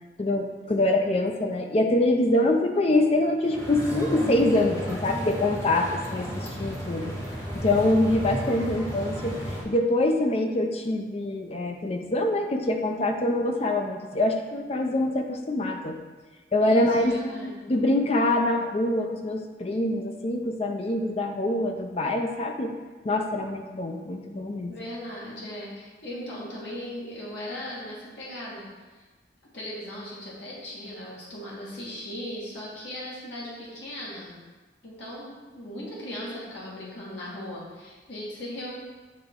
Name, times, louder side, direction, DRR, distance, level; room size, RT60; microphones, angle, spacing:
voice 1, 0.2-7.1 7.5-16.0 16.5-22.7 23.0-24.7, left 1 dB, 35° left, 4 dB, 0.4 m, -25 dB
sound 1, 3.4-9.6, equal, 15° left, 1.3 m, -33 dB
voice 2, 16.6-17.6 24.7-28.7 28.9-29.0 29.5-34.4 34.8-38.7, left 1 dB, 75° left, -6 dB, 1.7 m, -38 dB
8.6 x 3.5 x 3.6 m, 1.3 s
head